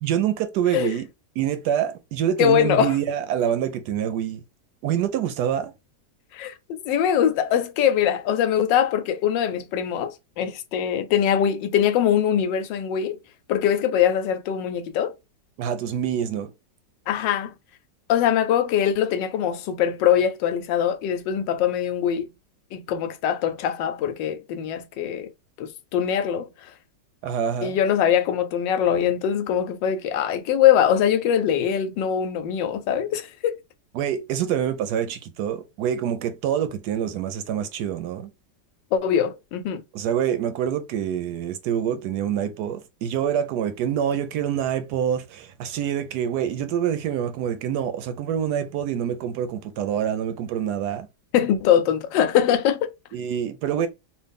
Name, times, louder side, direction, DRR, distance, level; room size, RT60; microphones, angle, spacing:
voice 1, 0.0-1.1 1.4-4.4 4.8-5.7 15.6-16.5 27.2-27.8 33.9-38.3 39.9-51.1 53.1-53.9, right 9 dB, 75° right, 1.0 m, -26 dB
voice 2, 2.4-3.0 6.3-13.2 13.5-15.1 17.1-17.5 18.1-22.3 22.7-25.3 25.6-26.7 27.6-33.6 38.9-39.8 51.3-52.9, left 9 dB, 85° left, 1.3 m, -22 dB
3.2 x 2.5 x 3.4 m
omnidirectional pair, 1.9 m